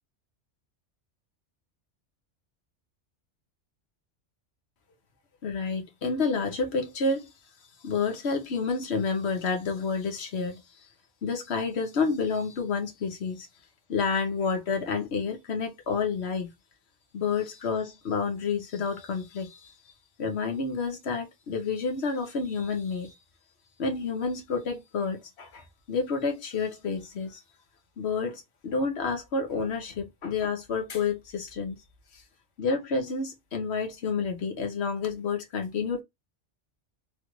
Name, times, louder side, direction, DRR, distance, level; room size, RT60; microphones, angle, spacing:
voice 1, 5.4-7.3 7.8-10.6 11.2-13.5 13.9-16.5 17.1-19.7 20.2-23.1 23.8-27.4 28.0-31.8 32.1-32.2 32.6-36.0, left 4 dB, 65° left, 1.1 m, -29 dB
3.2 x 2.5 x 3.0 m
omnidirectional pair, 1.2 m